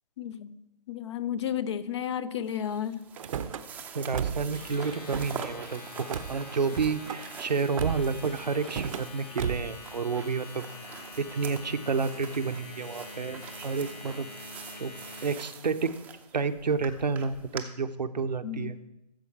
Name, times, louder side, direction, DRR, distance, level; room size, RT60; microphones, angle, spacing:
voice 1, 0.2-0.6 0.9-3.0 18.4-18.7, left 9 dB, 40° left, 16 dB, 0.5 m, -32 dB
sound 1, 2.4-17.6, right 7 dB, 10° right, 0.6 m, -46 dB
Car / Slam, 3.2-3.6 4.1-4.6 4.9-5.5 6.1-6.3 6.7-7.2 7.8-8.2 8.6-9.1 9.4-9.8, right 8 dB, 50° right, 0.7 m, -33 dB
voice 2, 3.9-14.3 14.8-14.9 15.2-15.9 16.3-18.7, right 5 dB, 85° right, 9 dB, 0.8 m, -30 dB
Domestic sounds home sounds, 4.4-15.5, left 3 dB, 65° left, 2.0 m, -45 dB
13.0 x 7.0 x 4.6 m, 0.92 s
figure-of-eight pair, 140°, 21 cm